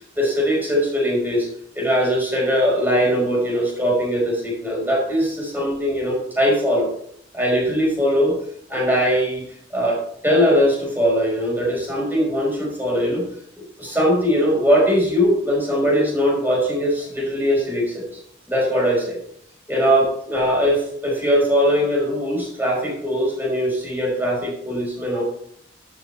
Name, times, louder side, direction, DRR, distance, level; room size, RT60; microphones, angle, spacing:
voice 1, 0.0-1.5 1.7-6.9 7.3-8.4 8.7-9.4 9.7-10.0 10.2-13.3 13.8-18.2 18.5-19.2 19.7-25.2, equal, 10° right, -4 dB, 5.2 m, -20 dB
11.5 x 8.8 x 3.5 m, 0.65 s
head